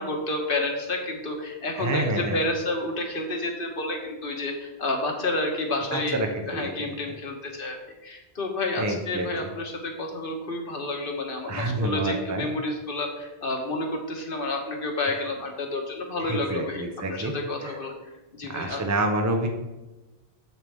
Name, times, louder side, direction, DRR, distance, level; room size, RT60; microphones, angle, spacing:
voice 1, 0.0-18.8, left 2 dB, 55° left, 2 dB, 1.5 m, -30 dB
voice 2, 1.8-2.4 5.9-6.7 8.8-9.3 11.5-12.4 16.2-17.3 18.5-19.5, right 2 dB, 20° right, 4 dB, 0.7 m, -28 dB
7.6 x 7.3 x 3.5 m, 1.1 s
omnidirectional pair, 1.1 m